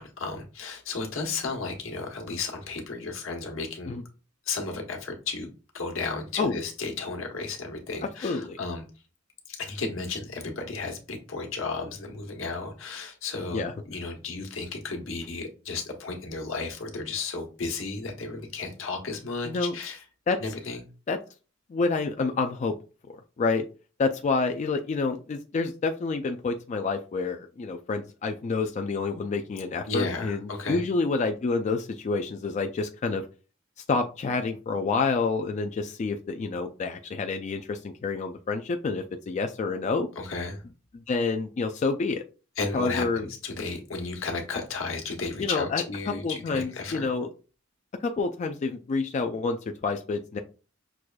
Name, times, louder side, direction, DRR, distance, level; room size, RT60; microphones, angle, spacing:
voice 1, 0.0-4.0 4.5-5.5 5.7-8.8 9.5-20.0 20.4-20.8 29.9-30.8 40.2-40.6 42.6-47.1, left 4 dB, 85° left, 1.1 m, -33 dB
voice 2, 8.2-8.6 13.5-13.7 19.4-19.7 20.3-20.4 21.1-21.2 21.7-22.8 23.1-23.7 24.0-33.2 33.9-40.1 40.9-42.2 42.7-43.3 45.4-47.3 48.0-49.6 49.8-50.4, left 4 dB, 35° left, 0.3 m, -28 dB
6.1 x 2.4 x 2.2 m
head